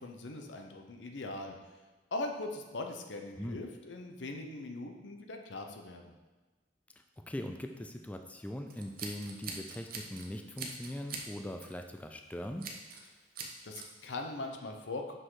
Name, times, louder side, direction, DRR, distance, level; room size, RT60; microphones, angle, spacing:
voice 1, 0.0-1.6 2.1-6.1 13.6-15.1, left 2 dB, 90° left, 4 dB, 0.8 m, -40 dB
voice 2, 7.3-12.7, left 1 dB, 10° left, 5 dB, 0.3 m, -41 dB
Scissors, 8.7-10.3 10.6-11.3 11.6-11.8 12.6-13.1 13.4-13.9, right 4 dB, 55° right, 0.8 m, -42 dB
6.2 x 5.2 x 3.8 m, 1.2 s
head